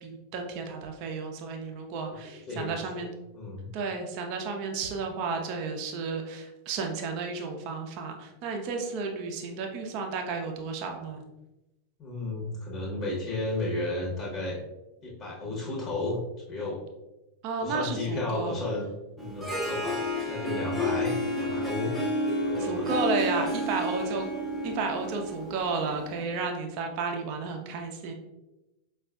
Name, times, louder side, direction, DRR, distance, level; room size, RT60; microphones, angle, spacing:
voice 1, 0.0-3.1 3.7-11.2 17.4-18.6 22.6-24.3 24.6-28.1, right 4 dB, 40° right, 3 dB, 0.5 m, -32 dB
voice 2, 2.5-3.1 3.3-3.7 12.0-14.6 15.0-16.2 16.5-16.8 17.6-18.9 19.2-21.9 22.5-22.9, left 2 dB, 35° left, -3 dB, 0.9 m, -33 dB
Harp, 19.2-26.3, left 1 dB, 5° left, 0.6 m, -31 dB
4.9 x 2.3 x 2.3 m, 0.98 s
figure-of-eight pair, 90°, 0 cm